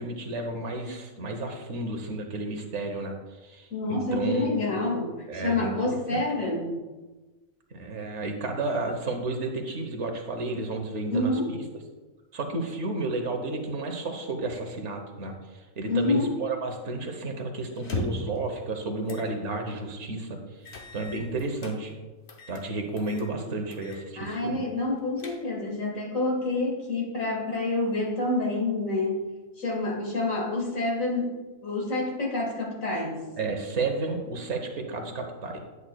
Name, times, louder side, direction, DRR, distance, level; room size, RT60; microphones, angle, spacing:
voice 1, 0.0-4.7 5.3-6.2 7.7-11.6 12.3-21.9 22.5-24.6 33.4-35.6, right 2 dB, 60° right, 4 dB, 1.2 m, -32 dB
voice 2, 3.7-5.1 5.4-6.8 11.1-11.5 15.9-16.3 24.2-29.2 29.6-31.4 31.6-33.2, left 2 dB, 70° left, -1 dB, 2.0 m, -28 dB
sound 1, 17.8-18.4 19.1-19.3 19.7-19.8 20.7-21.8 22.3-22.6 23.0-23.3 23.7-24.0 24.3-24.4 24.9-25.7, left 2 dB, 55° left, 1.1 m, -37 dB
9.7 x 8.1 x 2.3 m, 1.2 s
omnidirectional pair, 1.4 m